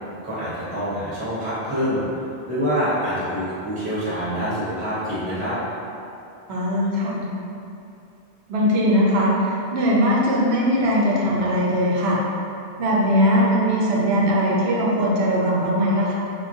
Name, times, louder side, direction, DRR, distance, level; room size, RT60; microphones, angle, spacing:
voice 1, 0.2-2.0 2.5-5.6, equal, 10° right, -11 dB, 0.8 m, -26 dB
voice 2, 6.5-7.2 8.5-12.2 12.8-16.1, equal, 80° right, -4 dB, 0.8 m, -20 dB
3.5 x 2.2 x 2.6 m, 2.6 s
omnidirectional pair, 1.1 m